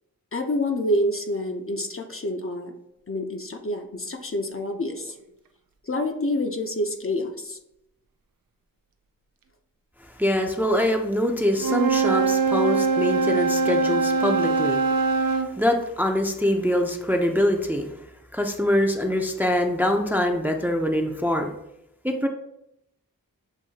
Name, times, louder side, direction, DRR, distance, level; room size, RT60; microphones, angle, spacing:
voice 1, 0.3-2.7 3.1-5.1 5.9-7.6, left 1 dB, 40° left, 4 dB, 0.6 m, -27 dB
voice 2, 10.2-14.8 15.3-17.9 18.3-21.5 22.0-22.3, left 1 dB, 5° right, 3 dB, 0.5 m, -24 dB
Wind instrument woodwind instrument, 11.5-15.5, right 4 dB, 75° right, 0.5 m, -22 dB
7.0 x 2.7 x 2.8 m, 0.82 s
wide cardioid pair, 45°, 34 cm